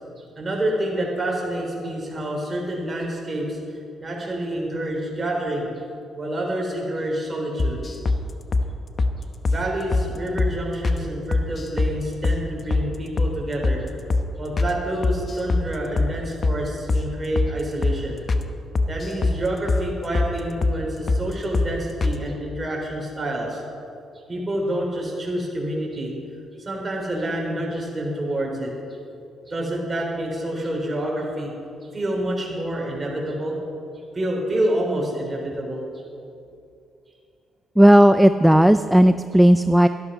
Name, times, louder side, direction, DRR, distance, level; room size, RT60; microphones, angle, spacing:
voice 1, 0.4-3.6 4.0-5.7 6.2-7.8 9.4-13.8 14.4-18.2 18.9-23.6 24.3-26.1 26.6-28.7 29.4-31.5 31.9-33.6 34.1-35.8, right 1 dB, 25° right, -1 dB, 3.9 m, -27 dB
sound 1, 7.6-8.2 8.5-8.7 9.0-9.1 9.5-9.6 9.9-10.1 10.4-10.5 10.8-11.0 11.3-11.9 12.2-12.4 12.7-12.9 13.2-13.3 13.6-13.8 14.1-14.3 14.6-14.7 15.0-15.7 16.0-16.1 16.4-16.6 16.9-17.1 17.4-17.5 17.8-18.0 18.3-18.5 18.8-19.4 19.7-19.8 20.1-20.3 20.6-20.8 21.1-21.2 21.5-21.7 22.0-22.2, left 3 dB, 40° left, 0.9 m, -21 dB
voice 2, 37.8-39.9, equal, 5° right, 11 dB, 0.3 m, -14 dB
12.5 x 12.0 x 5.6 m, 2.6 s
cardioid pair, 90°, 0 cm